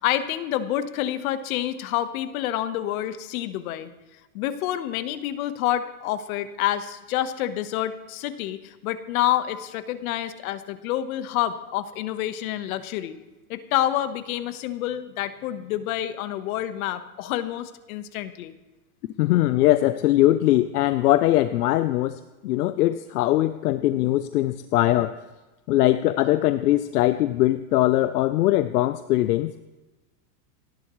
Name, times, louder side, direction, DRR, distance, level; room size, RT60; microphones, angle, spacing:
voice 1, 0.0-3.9 4.3-13.2 13.5-18.5, left 12 dB, 65° left, 11 dB, 1.4 m, -28 dB
voice 2, 19.2-25.1 25.7-29.6, left 15 dB, 80° left, 12 dB, 0.8 m, -21 dB
29.0 x 11.0 x 3.2 m, 1.1 s
supercardioid pair, 130°, 46 cm